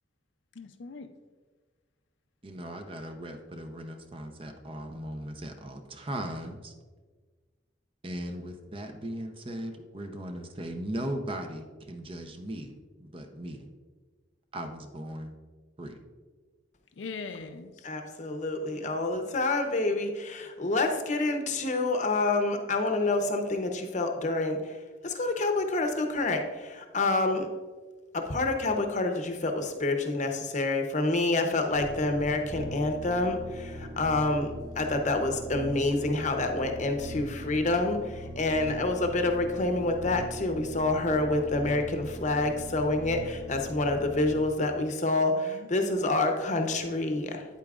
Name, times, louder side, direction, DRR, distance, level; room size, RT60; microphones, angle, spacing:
voice 1, 0.5-1.1 17.0-17.9 45.3-46.1, left 4 dB, 80° left, 8 dB, 0.5 m, -42 dB
voice 2, 2.4-6.7 8.0-12.7 13.0-13.7 14.5-15.3 15.8-16.0, right 1 dB, 30° right, 6 dB, 0.6 m, -38 dB
voice 3, 17.8-24.8 25.0-27.5 28.1-47.4, left 2 dB, 40° left, 5 dB, 0.8 m, -28 dB
sound 1, 31.7-44.4, equal, 60° right, 2.2 m, -41 dB
8.9 x 8.3 x 2.4 m, 1.4 s
head